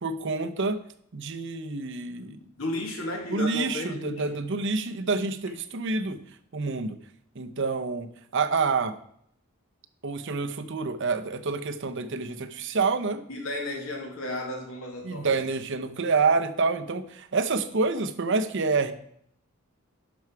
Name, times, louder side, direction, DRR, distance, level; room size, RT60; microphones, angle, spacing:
voice 1, 0.0-0.8 1.1-2.4 3.3-6.2 6.5-7.0 7.3-8.1 8.3-9.0 10.0-13.2 15.0-18.9, right 4 dB, 60° right, 9 dB, 0.8 m, -27 dB
voice 2, 2.6-4.3 13.3-15.3, left 2 dB, 70° left, 1 dB, 2.6 m, -33 dB
11.0 x 6.3 x 4.7 m, 0.68 s
head